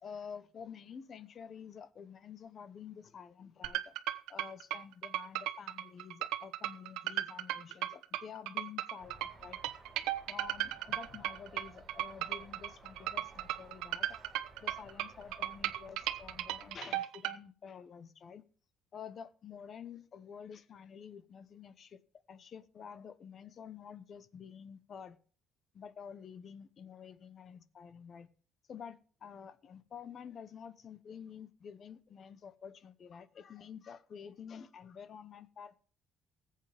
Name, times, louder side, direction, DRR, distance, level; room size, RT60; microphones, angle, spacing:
voice 1, 0.0-4.0 4.3-9.6 10.3-14.2 14.6-18.4 18.9-22.0 22.3-25.2 25.7-28.3 28.7-35.8, left 7 dB, 35° left, 0.9 m, -49 dB
sound 1, 3.6-17.4, right 14 dB, 90° right, 1.1 m, -36 dB
sound 2, 9.0-16.8, right 2 dB, 15° right, 4.6 m, -57 dB
20.0 x 8.4 x 3.4 m
cardioid pair, 170°, 0 cm